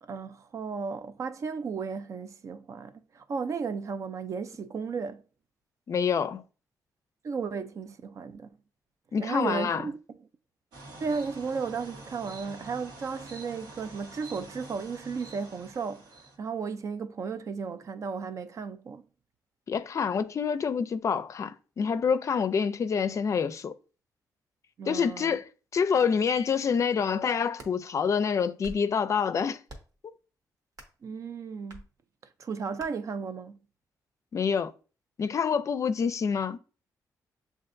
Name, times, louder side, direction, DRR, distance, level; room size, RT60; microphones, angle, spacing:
voice 1, 0.0-5.2 7.2-8.5 9.2-10.3 11.0-19.0 24.8-25.4 31.0-31.9 32.4-33.6, right 5 dB, 50° right, 0.5 m, -34 dB
voice 2, 5.9-6.4 9.1-9.8 19.7-23.7 24.8-29.6 30.0-30.1 34.3-34.7 35.2-36.6, left 6 dB, 50° left, 0.4 m, -27 dB
sound 1, 10.7-16.4, right 2 dB, 85° right, 1.2 m, -47 dB
sound 2, 27.3-27.8 28.4-28.9 29.6-30.0 30.7-31.0 31.7-31.9 32.8-32.9, right 1 dB, 65° right, 1.1 m, -46 dB
7.3 x 2.5 x 2.6 m
cardioid pair, 100°, 7 cm